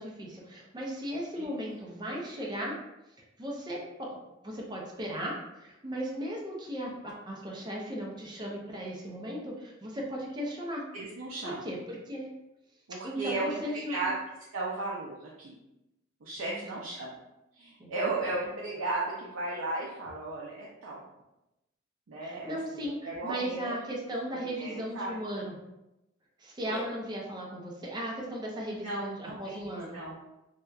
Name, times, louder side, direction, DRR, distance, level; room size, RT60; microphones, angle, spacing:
voice 1, 0.0-2.8 3.4-4.1 4.4-10.8 11.4-12.3 13.0-14.1 16.5-16.8 17.8-17.9 22.2-25.5 26.4-30.0, equal, 20° right, -2 dB, 0.5 m, -36 dB
voice 2, 10.9-11.7 12.9-13.6 13.9-14.1 14.5-15.6 16.2-17.2 17.5-21.0 22.1-23.7 24.3-25.2 26.6-26.8 28.7-30.1, right 2 dB, 70° right, -5 dB, 0.4 m, -35 dB
2.8 x 2.2 x 2.3 m, 0.92 s
head